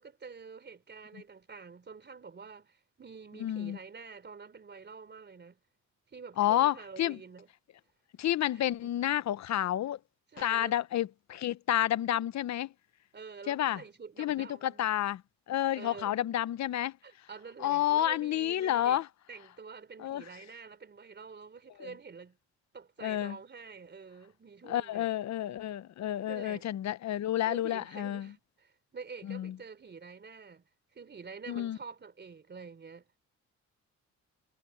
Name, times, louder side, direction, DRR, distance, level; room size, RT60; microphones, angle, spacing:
voice 1, 0.0-5.6 6.1-7.5 8.8-8.9 10.3-10.8 13.1-14.9 15.7-16.2 17.0-19.0 19.3-22.4 22.7-25.1 26.3-26.6 27.1-27.2 27.5-30.6 30.9-33.1, right 5 dB, 35° right, 3.5 m, -47 dB
voice 2, 3.4-3.8 6.4-7.2 8.2-10.0 10.4-12.7 13.5-13.8 14.2-15.2 15.5-17.0 17.6-19.1 20.0-20.3 21.8-21.9 23.0-23.4 24.6-28.3 29.2-29.6 31.5-31.8, left 12 dB, 65° left, 0.9 m, -30 dB
cardioid pair, 90°, 30 cm